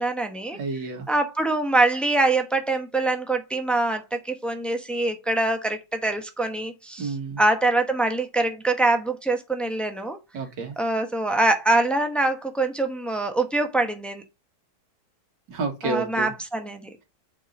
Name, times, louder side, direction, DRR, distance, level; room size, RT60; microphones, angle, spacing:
voice 1, 0.0-0.6 1.1-7.1 7.4-10.2 10.8-14.2 15.8-16.9, right 2 dB, ahead, 0.6 m, -24 dB
voice 2, 0.5-1.1 7.0-7.4 10.3-10.8 15.5-16.3, right 3 dB, 80° right, 2.2 m, -30 dB
6.4 x 4.4 x 5.2 m
omnidirectional pair, 1.9 m